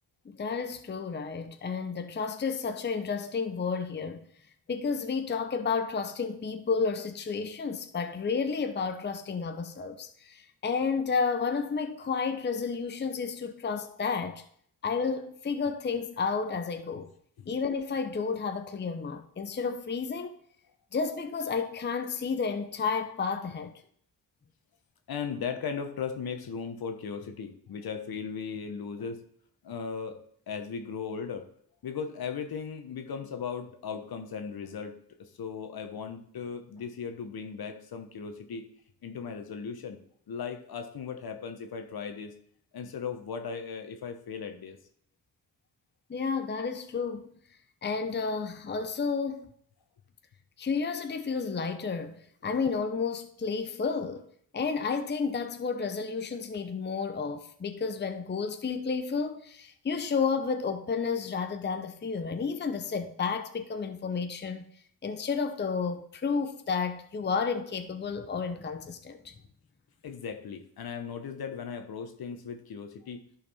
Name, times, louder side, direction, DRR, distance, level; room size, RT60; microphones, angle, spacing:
voice 1, 0.3-4.3 4.7-14.4 14.8-17.1 17.5-20.4 20.9-23.8 46.1-47.3 47.8-49.5 50.6-54.3 54.5-64.7 65.0-69.3, left 5 dB, 25° left, 0.7 m, -31 dB
voice 2, 25.1-29.2 29.6-30.2 30.5-31.4 31.8-38.7 39.0-40.0 40.3-42.3 42.7-44.8 70.0-73.2, left 6 dB, 60° left, 1.2 m, -37 dB
11.0 x 4.3 x 4.2 m
supercardioid pair, 50°, 40 cm